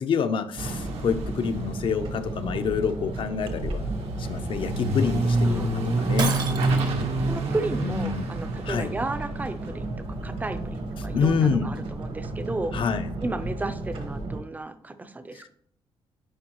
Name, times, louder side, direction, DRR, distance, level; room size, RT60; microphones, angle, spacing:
voice 1, 0.0-3.9 4.2-6.3 7.8-8.3 8.6-8.9 11.1-11.7 12.7-13.1 15.4-15.5, left 6 dB, 55° left, 10 dB, 0.6 m, -27 dB
sound 1, 0.5-14.4, right 2 dB, 60° right, 1.2 m, -34 dB
sound 2, 0.6-11.6 11.8-14.2, right 2 dB, 80° right, 1.2 m, -29 dB
voice 2, 5.4-5.8 7.3-9.9 10.2-12.9 13.2-15.5, right 2 dB, 15° right, 10 dB, 0.5 m, -33 dB
Shatter, 6.2-7.0, right 5 dB, 45° right, 0.8 m, -30 dB
10.0 x 4.5 x 3.0 m, 0.64 s
cardioid pair, 140°, 10 cm